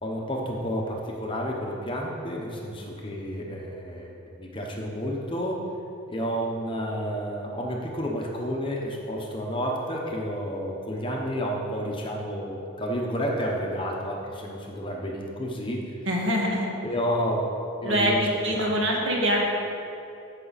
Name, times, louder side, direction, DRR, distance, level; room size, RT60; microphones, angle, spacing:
voice 1, 0.0-5.6 6.1-15.9 16.8-17.5 17.8-18.2 18.5-18.8, equal, 25° left, -1 dB, 1.0 m, -30 dB
voice 2, 16.1-16.7 17.8-19.5, equal, 60° right, -2 dB, 1.9 m, -24 dB
14.5 x 6.1 x 4.2 m, 2.7 s
head